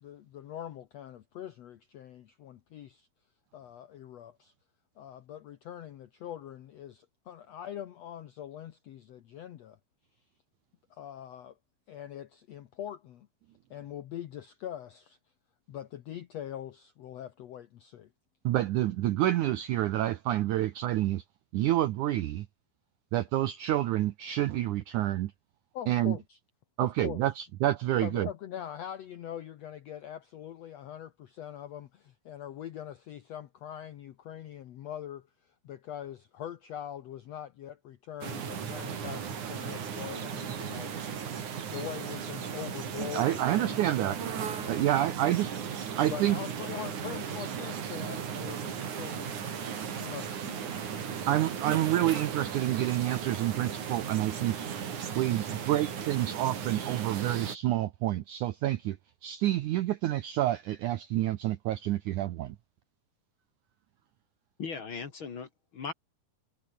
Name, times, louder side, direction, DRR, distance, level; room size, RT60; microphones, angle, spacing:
voice 1, 0.0-3.1 3.5-4.5 5.0-9.8 10.9-11.6 11.9-13.3 13.7-15.2 15.7-18.1 25.7-26.4 26.8-27.2 28.0-44.3 44.6-44.9 46.1-49.4 50.0-51.1, left 10 dB, 90° left, 1.4 m, -43 dB
voice 2, 18.4-21.2 21.5-22.5 23.1-25.3 25.9-26.2 26.8-28.3 43.0-44.2 44.7-45.5 46.0-46.4 51.3-54.6 55.1-59.0 59.2-62.6, right 14 dB, 80° right, 1.8 m, -28 dB
sound 1, 38.2-57.6, right 7 dB, 50° right, 4.0 m, -36 dB
voice 3, 64.6-65.9, left 5 dB, 45° left, 1.8 m, -38 dB
omnidirectional pair, 4.5 m